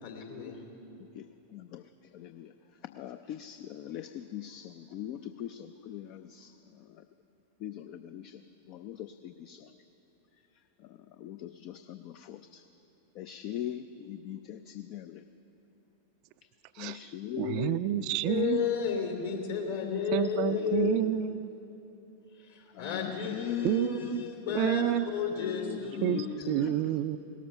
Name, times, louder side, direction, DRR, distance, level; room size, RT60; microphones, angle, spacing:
voice 1, 0.0-0.5 18.2-21.0 22.8-24.8 25.1-26.7, left 8 dB, 60° left, 2 dB, 2.8 m, -32 dB
voice 2, 1.5-1.8 2.2-2.5 3.0-6.5 7.6-8.3 8.7-9.6 11.2-12.4 13.2-15.1 16.8-17.9 20.7-20.9 22.8-24.9 25.5-26.3, left 11 dB, 40° left, 10 dB, 0.4 m, -40 dB
voice 3, 16.8-18.7 20.1-21.5 23.6-24.2 24.5-25.1 26.0-27.2, right 13 dB, 45° right, 13 dB, 0.4 m, -29 dB
18.0 x 13.0 x 5.8 m, 3.0 s
figure-of-eight pair, 90°, 0 cm